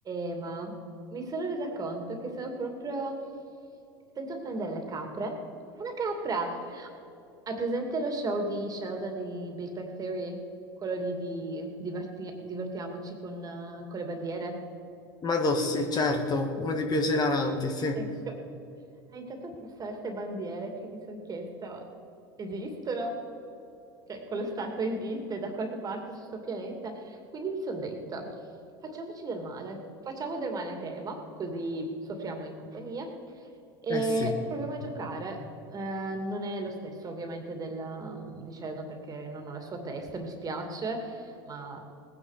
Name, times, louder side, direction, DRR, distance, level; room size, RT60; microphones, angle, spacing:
voice 1, 0.0-0.8 1.1-3.2 4.2-5.4 5.8-6.9 7.5-10.4 10.8-14.6 17.9-18.4 19.1-21.9 22.4-23.2 24.1-28.4 28.8-33.2 33.8-35.4 35.7-41.8, right 2 dB, 30° right, 4 dB, 2.5 m, -35 dB
voice 2, 15.2-18.0 33.9-34.3, left 2 dB, 35° left, 4 dB, 1.6 m, -27 dB
19.0 x 9.7 x 5.0 m, 2.8 s
supercardioid pair, 100°, 12 cm